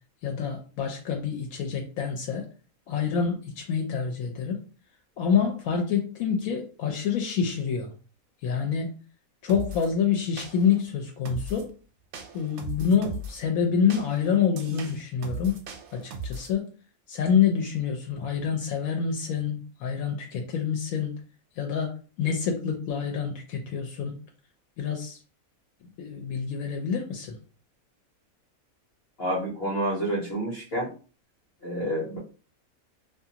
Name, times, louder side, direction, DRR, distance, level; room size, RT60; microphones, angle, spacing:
voice 1, 0.2-2.5 2.9-4.6 5.2-7.9 8.4-8.9 9.4-11.7 12.3-15.6 15.9-16.6 17.1-21.1 21.6-24.1 24.8-25.2 26.0-27.4, left 7 dB, 80° left, 2 dB, 1.0 m, -27 dB
sound 1, 9.5-9.9 10.4-10.8 11.3-11.7 12.1-13.4 13.9-16.5, right 2 dB, 80° right, 1.0 m, -38 dB
voice 2, 29.2-30.9 31.6-32.2, right 1 dB, 50° left, -4 dB, 0.9 m, -29 dB
2.5 x 2.4 x 2.8 m, 0.37 s
omnidirectional pair, 1.5 m